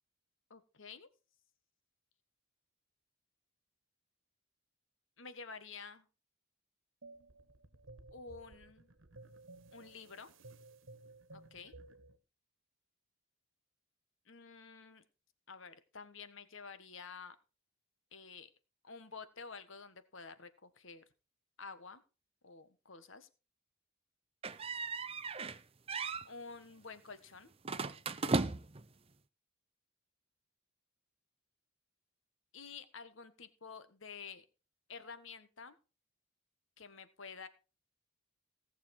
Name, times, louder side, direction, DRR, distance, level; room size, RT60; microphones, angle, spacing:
voice 1, 0.5-1.1 5.2-6.1 8.1-8.9 9.7-10.3 11.3-11.7 14.3-15.0 15.5-17.4 18.1-18.5 18.8-21.0 21.6-22.0 22.4-23.3 26.2-27.5 32.5-34.4 34.9-35.8 36.8-37.5, left 5 dB, 65° left, 12 dB, 1.4 m, -50 dB
sound 1, 7.0-12.2, right 2 dB, 60° right, 1.4 m, -56 dB
sound 2, 24.4-25.6 25.9-26.3 27.6-28.8, right 3 dB, 25° right, 0.6 m, -36 dB
17.5 x 6.9 x 4.8 m, 0.33 s
head